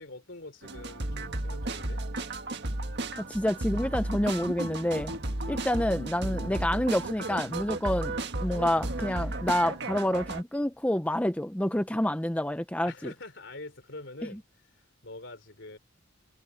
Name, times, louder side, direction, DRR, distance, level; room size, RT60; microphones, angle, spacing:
voice 1, 0.0-2.0 5.2-5.4 12.8-14.4 14.8-15.8, left 2 dB, 60° left, 3.7 m, -45 dB
sound 1, 0.6-10.4, right 2 dB, 55° right, 1.7 m, -34 dB
voice 2, 3.2-5.1 5.5-8.1 8.4-12.9, left 1 dB, 5° left, 0.7 m, -28 dB
sound 2, 5.0-5.7 8.8-9.8, equal, 10° right, 6.6 m, -52 dB
head